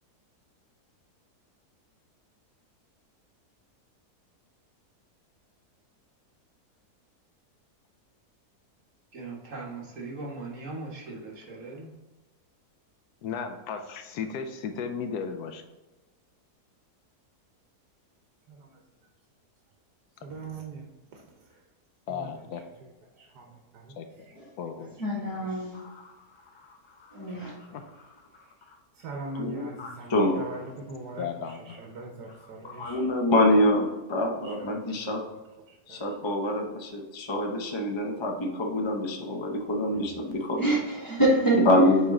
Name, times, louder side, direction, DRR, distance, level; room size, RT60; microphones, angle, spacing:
voice 1, 9.1-11.9, right 3 dB, 55° right, 1.6 m, -39 dB
voice 2, 13.2-15.6 22.1-22.6 24.0-24.1 24.3-25.0 31.2-31.8, left 6 dB, 75° left, 1.1 m, -35 dB
voice 3, 20.2-20.8 22.1-22.3 23.4-23.5 29.0-30.1 30.4-30.6 30.9-31.3 31.9-33.0 34.6-35.0, right 2 dB, 80° right, 1.4 m, -39 dB
voice 4, 25.0-25.8 27.1-27.5 40.6-41.7, right 2 dB, 15° left, 1.5 m, -25 dB
voice 5, 29.3-30.5 32.6-35.2 35.9-40.7 41.5-42.1, left 1 dB, 50° left, 0.3 m, -25 dB
8.0 x 3.3 x 3.6 m
omnidirectional pair, 1.7 m